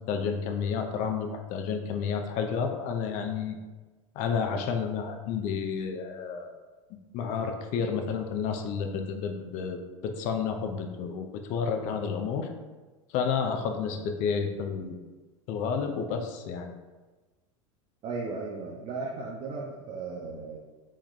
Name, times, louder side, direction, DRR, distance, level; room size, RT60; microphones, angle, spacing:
voice 1, 0.1-3.6 4.2-6.5 7.1-12.5 13.1-15.0 15.5-16.7, left 6 dB, 50° left, 5 dB, 0.5 m, -30 dB
voice 2, 18.0-20.6, right 3 dB, 40° right, -3 dB, 0.5 m, -36 dB
3.1 x 2.2 x 3.8 m, 1.2 s
hypercardioid pair, 100°, 17 cm